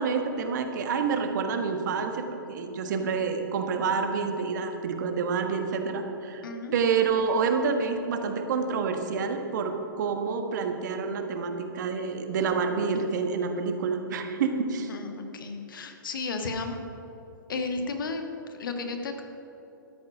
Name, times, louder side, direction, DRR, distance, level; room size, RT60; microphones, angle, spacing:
voice 1, 0.0-6.4 6.7-14.9, right 5 dB, 55° right, 6 dB, 1.5 m, -28 dB
voice 2, 6.4-6.7 14.8-16.8 17.5-19.2, left 3 dB, 70° left, 5 dB, 1.5 m, -33 dB
13.0 x 10.0 x 5.1 m, 3.0 s
hypercardioid pair, 120°, 12 cm